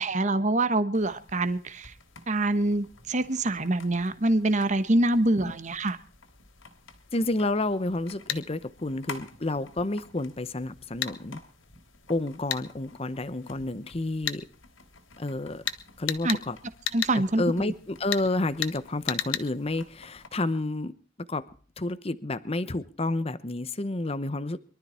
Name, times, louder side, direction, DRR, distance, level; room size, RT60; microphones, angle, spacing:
voice 1, 0.0-1.9 2.3-6.0 16.2-16.4 16.9-17.7, right 2 dB, 40° right, 11 dB, 1.2 m, -25 dB
sound 1, 0.9-20.3, left 3 dB, 85° left, 3.3 m, -51 dB
voice 2, 7.1-11.4 12.1-14.4 15.2-15.6 16.0-16.6 17.1-20.9 21.3-21.5 21.8-24.6, left 2 dB, 30° left, 13 dB, 0.8 m, -30 dB
sound 2, 8.3-8.4 11.0-11.1 12.5-12.6 14.3-14.4 15.7-15.8 16.1-16.4 16.9-17.2 18.1-18.3 18.6-18.8 19.1-19.5, left 10 dB, 70° left, 1.6 m, -30 dB
23.5 x 13.0 x 4.4 m, 0.42 s
head